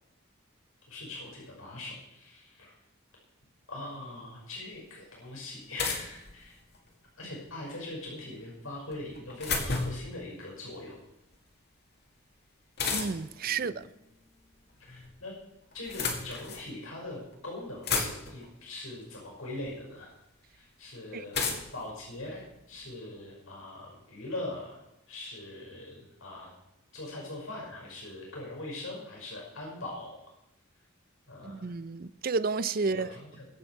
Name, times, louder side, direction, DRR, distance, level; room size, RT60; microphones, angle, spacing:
voice 1, 0.9-2.7 3.7-6.6 7.2-11.0 13.5-13.8 14.9-15.3 15.7-20.1 20.5-21.5 21.7-24.8 25.1-26.5 26.9-30.2 31.3-31.7 32.8-33.5, left 2 dB, 80° left, 5.6 m, -41 dB
sound 1, 4.7-4.8 5.8-6.9 8.9-10.1 12.8-13.4 14.5-15.1 15.7-16.7 17.3-17.4 17.6-18.5 19.6-19.7 21.3-22.9, left 4 dB, 50° left, 2.1 m, -33 dB
voice 2, 12.9-13.8 21.1-21.2 31.4-33.1, right 4 dB, 45° right, 0.5 m, -31 dB
22.0 x 8.0 x 4.7 m
head